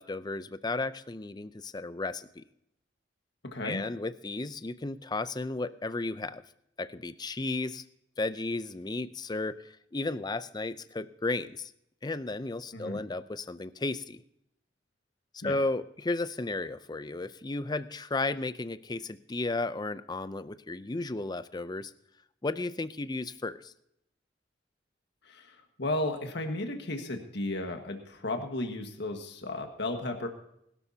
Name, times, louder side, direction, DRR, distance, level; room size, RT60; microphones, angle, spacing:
voice 1, 0.0-2.4 3.6-6.4 6.8-7.8 8.2-11.7 12.0-14.2 15.3-21.9 22.4-23.7, left 2 dB, 20° left, 14 dB, 0.5 m, -34 dB
voice 2, 3.4-3.8 12.7-13.0 15.4-15.6 25.2-30.3, left 2 dB, 65° left, 4 dB, 1.7 m, -34 dB
21.5 x 12.5 x 2.8 m, 0.76 s
head